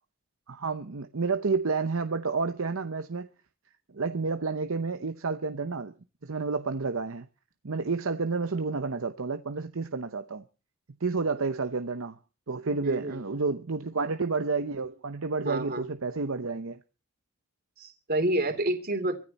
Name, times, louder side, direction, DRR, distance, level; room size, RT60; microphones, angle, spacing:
voice 1, 0.5-3.3 3.9-5.9 6.2-7.3 7.6-10.4 11.0-12.2 12.5-16.8, right 4 dB, 65° right, 0.8 m, -30 dB
voice 2, 12.8-13.2 15.4-15.8 17.8-19.2, right 1 dB, 45° right, 2.8 m, -29 dB
24.5 x 10.5 x 4.2 m
head